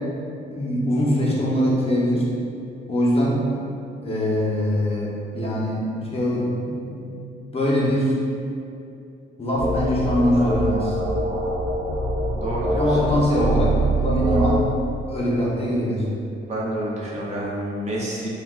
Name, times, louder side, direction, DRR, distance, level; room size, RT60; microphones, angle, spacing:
voice 1, 0.5-2.3 2.9-3.4 4.0-7.1 7.5-8.1 9.4-10.9 12.8-13.7 14.0-14.6 15.0-16.0, equal, 30° left, -5 dB, 0.6 m, -22 dB
sound 1, 9.6-14.6, right 1 dB, 85° right, 0.5 m, -24 dB
voice 2, 12.3-13.1 16.5-18.3, right 1 dB, 35° right, -5 dB, 0.6 m, -28 dB
2.3 x 2.2 x 3.4 m, 2.6 s
cardioid pair, 90°, 20 cm